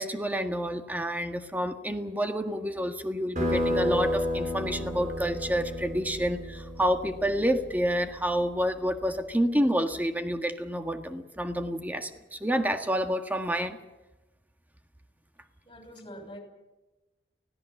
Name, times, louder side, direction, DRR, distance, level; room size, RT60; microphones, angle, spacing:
voice 1, 0.0-13.8, equal, 10° right, 6 dB, 1.7 m, -29 dB
sound 1, 3.4-8.5, equal, 45° right, 6.9 m, -31 dB
voice 2, 15.6-16.4, equal, 25° left, 5 dB, 5.9 m, -44 dB
25.0 x 18.0 x 7.1 m, 1.1 s
head